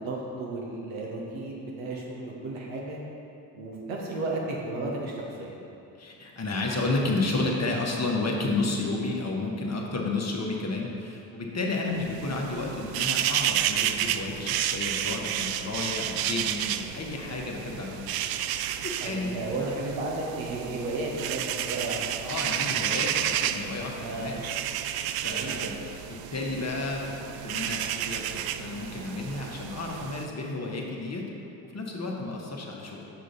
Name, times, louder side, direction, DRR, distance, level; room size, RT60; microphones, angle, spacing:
voice 1, 0.0-3.0 3.5-5.6 19.0-22.1 24.0-24.4 25.3-25.7, right 2 dB, 65° right, -3 dB, 1.6 m, -33 dB
voice 2, 5.9-18.1 18.5-19.7 22.2-24.4 25.2-25.8 26.3-31.3 31.6-33.1, left 2 dB, 30° left, -1 dB, 1.3 m, -31 dB
sound 1, 12.0-30.3, right 11 dB, 50° right, 0.4 m, -31 dB
6.9 x 6.3 x 4.1 m, 2.8 s
hypercardioid pair, 45°, 49 cm